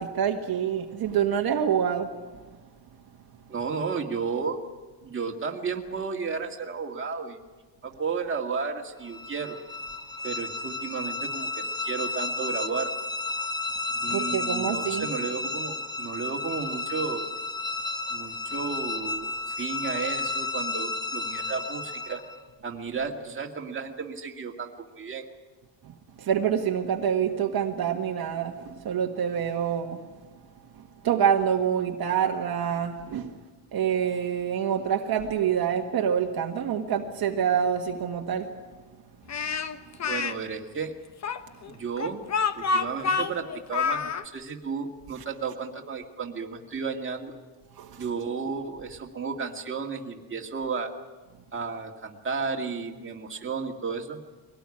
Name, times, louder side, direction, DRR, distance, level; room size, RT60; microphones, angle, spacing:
voice 1, 0.0-2.1 14.1-15.1 26.2-30.0 31.0-33.3 33.7-38.5 47.8-48.0, right 8 dB, 55° right, 3 dB, 1.6 m, -26 dB
voice 2, 3.5-4.6 5.0-7.4 7.8-9.6 10.2-12.9 14.0-17.3 18.1-22.2 22.6-25.2 40.0-40.9 41.7-42.2 42.5-47.4 48.0-50.9 51.5-54.2, right 5 dB, 25° right, 2 dB, 2.2 m, -33 dB
sound 1, 9.0-22.4, left 3 dB, 10° left, 1.0 m, -32 dB
Speech, 39.3-40.3 41.2-44.2, left 5 dB, 40° left, 1.1 m, -27 dB
23.0 x 18.5 x 9.8 m, 1.3 s
cardioid pair, 150°, 44 cm